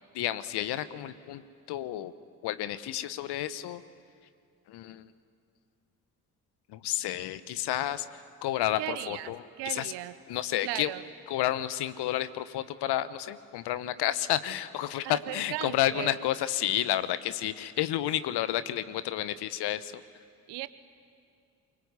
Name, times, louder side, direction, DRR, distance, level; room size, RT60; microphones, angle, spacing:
voice 1, 0.1-1.4 1.7-2.1 2.4-3.8 4.7-5.1 6.7-9.9 10.3-10.9 11.3-20.0, left 13 dB, 65° left, 14 dB, 1.1 m, -31 dB
voice 2, 8.8-9.3 9.6-10.2 10.6-11.0 15.0-16.1 20.5-20.7, right 16 dB, 65° right, 15 dB, 1.1 m, -36 dB
28.0 x 24.0 x 8.3 m, 2.3 s
figure-of-eight pair, 40°, 43 cm